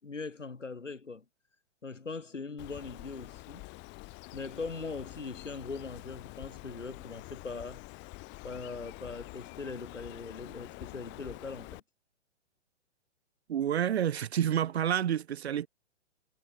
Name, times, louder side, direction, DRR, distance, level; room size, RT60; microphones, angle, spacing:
voice 1, 0.0-1.2 1.8-3.7 4.3-7.8 8.4-11.8, left 4 dB, 85° left, 6.1 m, -41 dB
Bird, 2.6-11.8, left 24 dB, 30° left, 3.4 m, -47 dB
voice 2, 13.5-15.7, right 10 dB, 60° right, 2.7 m, -29 dB
figure-of-eight pair, 120°, 36 cm